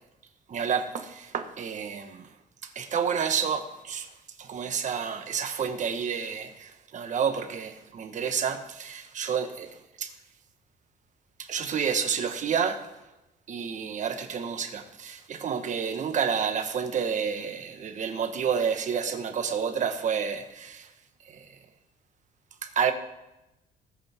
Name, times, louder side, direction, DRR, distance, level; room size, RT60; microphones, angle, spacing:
voice 1, 0.5-2.3 2.6-4.1 4.4-10.1 11.4-12.8 13.5-20.9 21.2-21.6 22.6-22.9, right 7 dB, 45° right, 1.4 m, -30 dB
18.5 x 8.2 x 3.7 m
cardioid pair, 110°, 17 cm